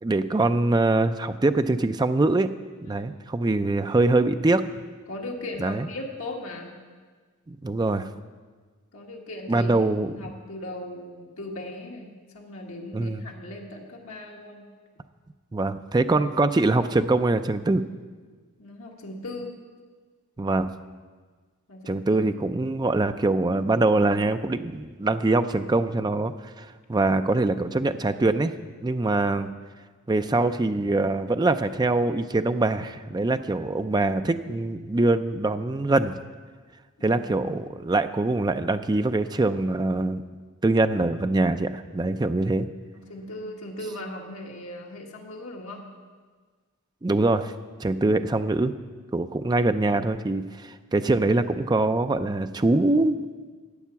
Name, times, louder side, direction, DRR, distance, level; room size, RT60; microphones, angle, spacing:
voice 1, 0.0-2.5 2.8-4.6 5.6-5.9 7.5-8.1 9.5-10.1 12.9-13.2 15.5-17.8 20.4-20.7 21.9-28.5 28.8-29.5 30.1-36.2 37.0-40.2 40.6-42.7 47.0-47.5 47.8-48.7 49.1-53.2, right 2 dB, 20° right, 10 dB, 0.4 m, -23 dB
voice 2, 5.1-6.7 8.9-9.7 10.0-14.7 18.6-19.5 21.7-22.2 34.0-34.1 37.0-37.2 42.9-45.8, left 1 dB, 70° left, -1 dB, 1.5 m, -38 dB
12.0 x 8.5 x 6.9 m, 1.5 s
head